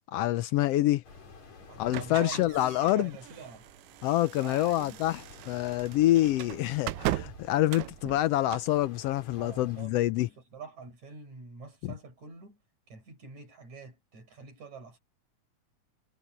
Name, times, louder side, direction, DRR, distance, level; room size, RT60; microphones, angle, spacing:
voice 1, 0.1-1.0 1.8-3.1 4.0-10.3 11.8-11.9, left 15 dB, 90° left, 1.4 m, -26 dB
sound 1, 1.0-9.8, left 4 dB, 60° left, 5.6 m, -53 dB
voice 2, 1.6-2.5 2.8-3.7 4.4-5.0 9.4-12.6 12.9-15.0, right 4 dB, 65° right, 7.6 m, -45 dB
sound 2, 1.9-8.8, right 16 dB, 85° right, 2.2 m, -39 dB
omnidirectional pair, 3.5 m